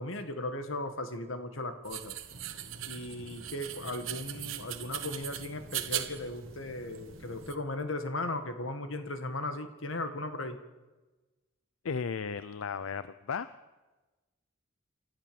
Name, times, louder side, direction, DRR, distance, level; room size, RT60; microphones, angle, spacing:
voice 1, 0.0-2.2 2.9-10.6, left 2 dB, 70° left, 8 dB, 1.8 m, -37 dB
sound 1, 1.8-7.5, right 12 dB, 75° right, 1.3 m, -40 dB
sound 2, 2.3-7.5, right 1 dB, 90° right, 2.4 m, -51 dB
voice 2, 11.8-13.5, left 5 dB, 90° left, 14 dB, 0.6 m, -35 dB
28.0 x 13.0 x 7.0 m, 1.2 s
head